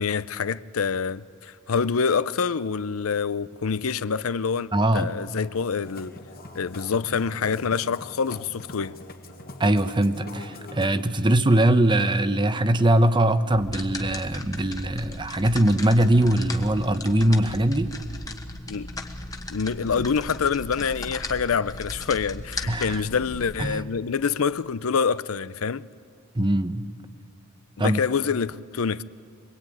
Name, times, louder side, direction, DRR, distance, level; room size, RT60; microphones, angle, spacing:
voice 1, 0.0-6.1 6.5-8.9 18.7-18.9 19.5-25.8 27.8-29.0, left 5 dB, 75° left, 0.6 m, -26 dB
voice 2, 4.7-5.1 9.6-17.9 22.7-23.0 23.6-23.8 26.3-26.9 27.8-28.0, right 1 dB, 20° right, 0.9 m, -21 dB
Musical instrument, 5.8-10.9, left 2 dB, 45° left, 1.6 m, -43 dB
sound 1, 13.5-23.7, left 2 dB, 15° left, 1.3 m, -37 dB
25.0 x 22.0 x 9.2 m
head